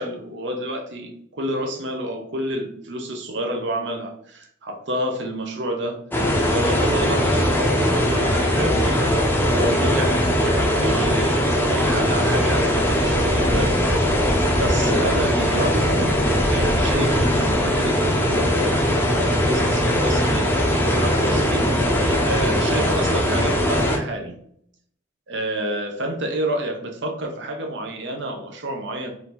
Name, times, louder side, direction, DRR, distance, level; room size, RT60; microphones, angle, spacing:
voice 1, 0.0-6.0 6.5-9.2 9.5-14.2 14.5-21.7 22.2-24.4 25.3-29.1, right 1 dB, 65° right, 3 dB, 0.9 m, -29 dB
sound 1, 6.1-24.0, equal, 10° left, 0.6 m, -20 dB
4.1 x 2.6 x 4.2 m, 0.66 s
head